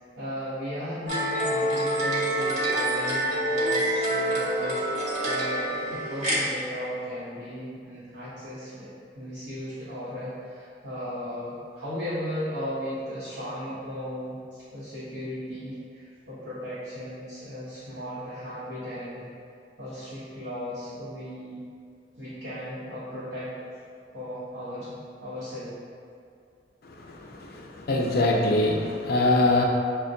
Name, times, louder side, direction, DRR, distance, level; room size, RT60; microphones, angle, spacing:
voice 1, 0.2-4.8 5.2-8.9 9.1-19.3 19.8-21.6 22.2-23.5 24.1-24.9 25.2-25.8, equal, 85° right, -12 dB, 0.9 m, -36 dB
sound 1, 1.1-6.4, right 1 dB, 40° right, 0.8 m, -26 dB
voice 2, 26.9-29.6, left 2 dB, 60° left, -1 dB, 0.5 m, -24 dB
5.8 x 2.1 x 2.6 m, 2.4 s
head